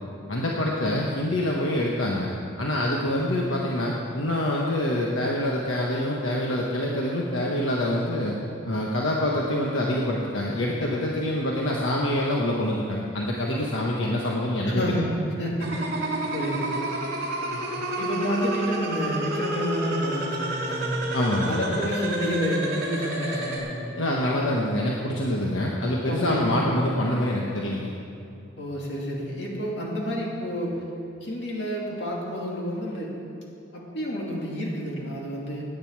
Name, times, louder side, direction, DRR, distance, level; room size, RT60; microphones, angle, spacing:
voice 1, 0.3-2.3 2.6-8.4 8.6-14.8 17.5-17.9 20.7-20.8 21.1-21.6 23.9-27.9, left 1 dB, 85° left, -2 dB, 1.2 m, -26 dB
voice 2, 0.8-1.2 3.1-3.5 14.7-15.1 15.4-15.9 16.3-16.8 18.0-21.1 21.4-23.9 26.1-26.7 28.6-30.8 31.2-33.1 33.7-35.6, equal, 65° left, -3 dB, 2.5 m, -29 dB
sound 1, 15.6-23.6, right 1 dB, 50° right, 2.6 m, -30 dB
17.5 x 9.3 x 4.7 m, 2.6 s
head